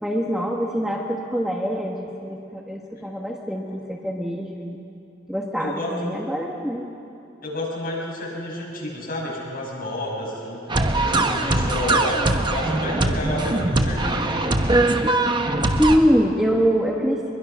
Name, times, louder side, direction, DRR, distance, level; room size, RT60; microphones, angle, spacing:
voice 1, 0.0-4.8 5.3-6.9 15.8-17.3, equal, 5° right, 0 dB, 1.2 m, -24 dB
voice 2, 5.6-6.1 7.4-10.6 10.9-12.2 12.5-14.8, left 1 dB, 50° left, -4 dB, 7.4 m, -30 dB
sound 1, 10.7-16.0, right 2 dB, 25° right, 1.1 m, -21 dB
23.5 x 22.0 x 6.1 m, 2.8 s
head